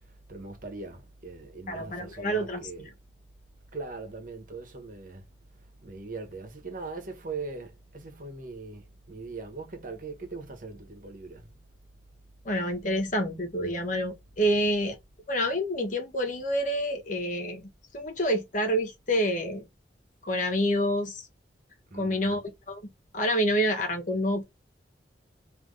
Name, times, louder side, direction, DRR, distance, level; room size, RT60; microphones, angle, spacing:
voice 1, 0.3-2.9 3.7-5.2 5.8-11.5 21.9-22.4, right 3 dB, 50° right, 1.3 m, -40 dB
voice 2, 1.7-2.9 12.4-15.0 15.3-17.7 17.9-19.6 20.2-21.3 21.9-24.4, equal, 45° left, 1.3 m, -28 dB
3.5 x 2.9 x 3.8 m
head